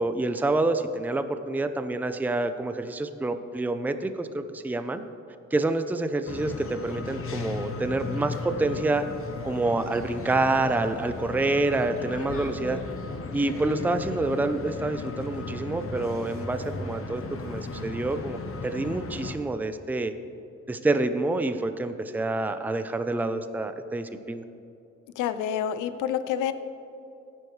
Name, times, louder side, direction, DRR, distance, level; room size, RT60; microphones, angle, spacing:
voice 1, 0.0-5.0 5.5-9.0 9.4-12.8 13.3-20.1 20.7-24.4, right 2 dB, 5° right, 9 dB, 0.5 m, -27 dB
sound 1, 6.3-19.4, left 3 dB, 45° left, 1.1 m, -36 dB
voice 2, 25.2-26.5, left 9 dB, 85° left, 12 dB, 0.7 m, -28 dB
15.0 x 10.0 x 3.2 m, 2.8 s
cardioid pair, 90°, 30 cm